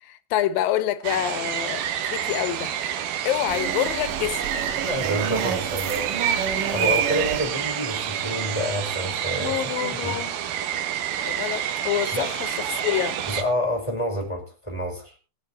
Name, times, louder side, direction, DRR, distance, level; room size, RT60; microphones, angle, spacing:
voice 1, 0.0-2.7 3.3-4.6 9.4-10.3 11.3-13.2, left 12 dB, 80° left, 2.6 m, -27 dB
sound 1, 1.0-13.4, right 10 dB, 85° right, 3.1 m, -28 dB
sound 2, 3.5-8.6, right 7 dB, 70° right, 2.9 m, -31 dB
voice 2, 4.8-6.1 6.7-10.2 12.1-12.3 13.3-15.1, equal, 10° left, 4.4 m, -28 dB
20.5 x 7.4 x 4.4 m
omnidirectional pair, 4.1 m